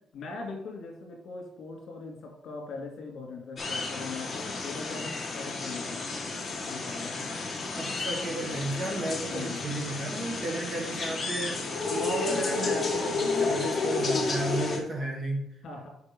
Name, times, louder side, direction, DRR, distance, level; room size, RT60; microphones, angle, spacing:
voice 1, 0.1-6.1 6.7-7.2 9.3-9.6 15.6-15.9, left 4 dB, 60° left, 1 dB, 2.3 m, -40 dB
sound 1, 3.6-14.8, left 3 dB, 20° left, 1.5 m, -31 dB
voice 2, 7.7-15.4, right 1 dB, 30° right, 2 dB, 1.4 m, -34 dB
6.5 x 5.6 x 5.1 m, 0.78 s
cardioid pair, 155°, 0 cm